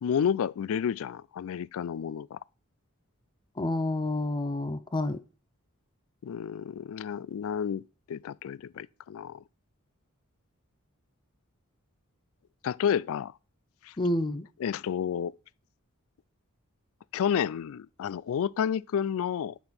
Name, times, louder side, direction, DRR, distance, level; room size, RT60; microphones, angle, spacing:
voice 1, 0.0-2.4 6.2-9.4 12.6-13.3 13.8-13.9 14.6-15.3 17.1-19.6, left 8 dB, 65° left, 0.3 m, -30 dB
voice 2, 3.6-5.2 14.0-14.5, left 1 dB, 20° left, 0.6 m, -29 dB
7.0 x 5.7 x 6.0 m
head